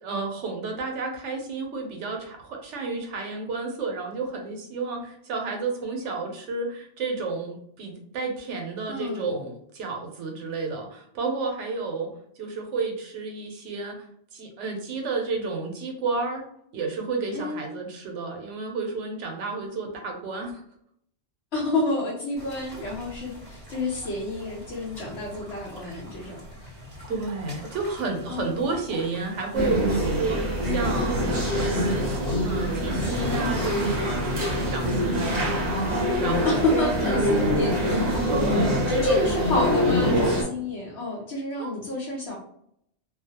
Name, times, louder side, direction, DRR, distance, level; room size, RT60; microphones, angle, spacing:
voice 1, 0.0-12.1 12.4-14.0 14.3-16.4 16.7-20.6 27.1-36.7 38.0-39.2 41.6-41.7, right 3 dB, 85° right, 2 dB, 0.9 m, -31 dB
voice 2, 8.9-9.3 17.3-17.6 21.5-26.8 28.3-28.7 36.4-38.2 38.9-42.4, left 2 dB, 70° left, -4 dB, 0.9 m, -29 dB
sound 1, 22.4-38.4, equal, 15° right, 1.1 m, -43 dB
sound 2, 29.5-40.4, equal, 40° right, 0.7 m, -24 dB
2.3 x 2.1 x 2.7 m, 0.70 s
omnidirectional pair, 1.2 m